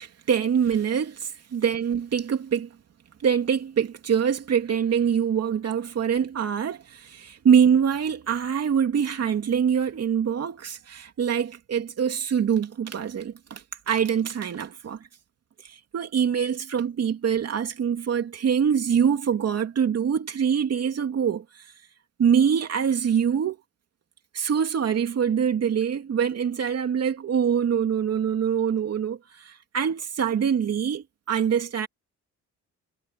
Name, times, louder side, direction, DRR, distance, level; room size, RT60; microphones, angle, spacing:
voice 1, 0.0-2.7 3.2-15.0 15.6-21.7 22.2-23.6 24.3-31.9, right 7 dB, 55° right, 3.0 m, -24 dB
cardioid pair, 90°, 30 cm